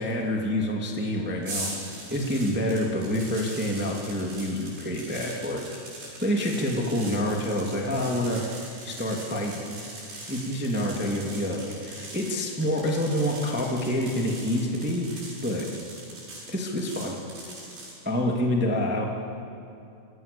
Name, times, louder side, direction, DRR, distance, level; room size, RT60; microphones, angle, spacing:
voice 1, 0.0-5.6 6.2-8.4 8.8-9.5 10.3-15.7 16.5-17.1 18.0-19.0, left 1 dB, 10° right, 0 dB, 0.6 m, -27 dB
sound 1, 1.4-18.0, right 2 dB, 55° right, 8.6 m, -41 dB
27.5 x 19.5 x 7.0 m, 2.7 s
omnidirectional pair, 5.4 m